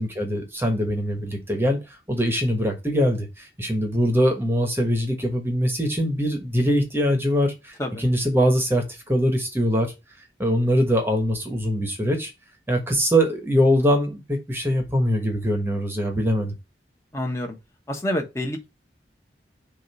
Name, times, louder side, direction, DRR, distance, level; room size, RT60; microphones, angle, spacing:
voice 1, 0.0-9.9 10.4-12.3 12.7-16.5, equal, 15° right, 1.2 m, -22 dB
voice 2, 17.1-17.6 17.9-18.6, left 1 dB, 15° left, 1.3 m, -27 dB
6.4 x 2.7 x 5.4 m
head